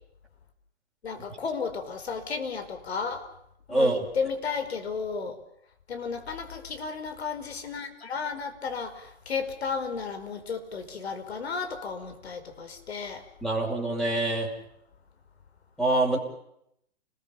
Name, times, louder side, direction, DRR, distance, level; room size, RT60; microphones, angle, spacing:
voice 1, 1.0-3.3 3.7-5.4 5.9-13.2, left 5 dB, 65° left, 8 dB, 5.2 m, -33 dB
voice 2, 3.7-4.1 13.4-14.5 15.8-16.2, right 2 dB, ahead, -1 dB, 5.4 m, -25 dB
29.5 x 21.0 x 7.2 m, 0.76 s
hypercardioid pair, 135°, 34 cm